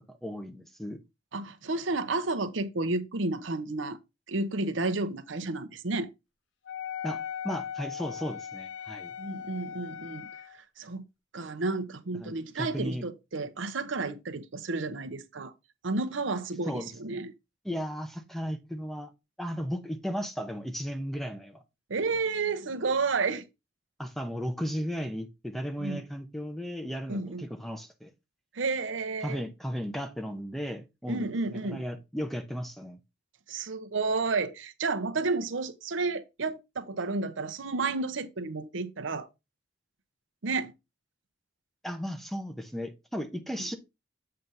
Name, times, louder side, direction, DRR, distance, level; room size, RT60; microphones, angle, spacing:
voice 1, 0.1-1.0 7.0-9.1 12.2-13.0 16.6-17.1 17.6-19.1 19.4-21.6 24.0-28.1 29.2-33.0 41.8-43.8, equal, ahead, 0.7 m, -35 dB
voice 2, 1.3-4.0 4.3-6.1 9.2-10.3 10.5-11.0 11.3-15.5 15.8-17.3 21.9-23.4 25.8-26.0 27.1-27.5 28.5-29.4 31.1-31.8 33.5-39.3 40.4-40.7 43.6-43.7, right 3 dB, 80° right, 0.8 m, -31 dB
Wind instrument woodwind instrument, 6.7-10.6, left 8 dB, 75° left, 0.7 m, -38 dB
7.7 x 3.3 x 5.4 m
head